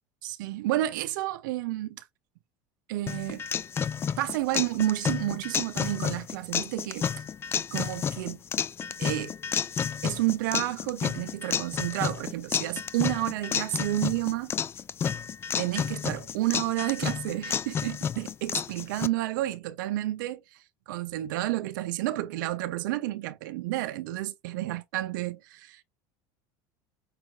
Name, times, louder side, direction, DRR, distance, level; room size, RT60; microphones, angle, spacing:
voice 1, 0.2-2.0 2.9-3.4 4.2-7.1 7.6-8.4 9.0-9.3 10.0-14.5 15.6-20.6 20.9-25.8, right 16 dB, 90° right, 0.5 m, -30 dB
sound 1, 3.1-19.1, left 7 dB, 25° left, 0.3 m, -31 dB
5.4 x 3.1 x 2.4 m
supercardioid pair, 125°, 10 cm